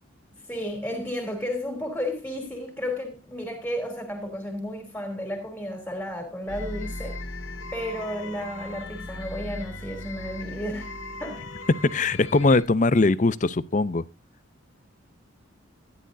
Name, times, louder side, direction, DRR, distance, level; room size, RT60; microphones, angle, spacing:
voice 1, 0.5-7.2 7.7-10.9 11.2-11.5, equal, 5° left, 3.2 m, -33 dB
sound 1, 6.5-12.6, left 2 dB, 80° left, 2.2 m, -37 dB
voice 2, 11.9-14.0, left 3 dB, 40° left, 0.6 m, -21 dB
14.0 x 11.0 x 2.6 m
head